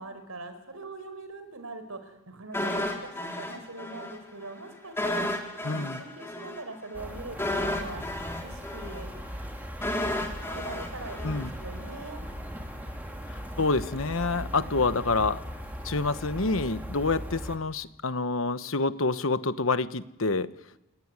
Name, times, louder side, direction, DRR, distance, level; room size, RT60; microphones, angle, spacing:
voice 1, 0.0-9.1 10.4-12.2 14.3-14.7 20.2-20.5, right 2 dB, 85° right, 9 dB, 4.9 m, -42 dB
sound 1, 2.5-4.2 4.4-4.6 5.0-12.0 12.3-12.5, left 1 dB, 10° left, 3.4 m, -33 dB
voice 2, 5.6-6.0 11.2-11.5 13.3-15.4 15.8-20.5, left 3 dB, 65° left, 12 dB, 1.2 m, -27 dB
sound 2, 6.9-17.6, equal, 10° right, 3.3 m, -39 dB
30.0 x 17.5 x 9.8 m, 0.94 s
head